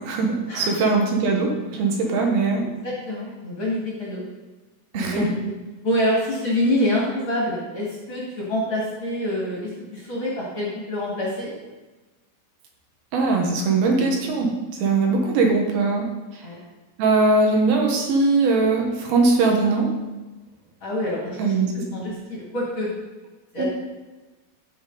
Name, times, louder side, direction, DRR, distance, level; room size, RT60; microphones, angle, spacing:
voice 1, 0.0-2.6 4.9-5.3 13.1-14.5 14.8-16.1 16.3-16.5 17.0-19.9 21.4-21.8 23.6-23.7, right 3 dB, 75° right, 1 dB, 3.3 m, -20 dB
voice 2, 2.6-4.2 4.9-5.5 5.8-11.5 16.4-16.6 20.8-21.5 21.9-22.9 23.5-23.6, left 1 dB, 35° left, -5 dB, 2.5 m, -26 dB
14.5 x 6.7 x 4.0 m, 1.2 s
omnidirectional pair, 4.5 m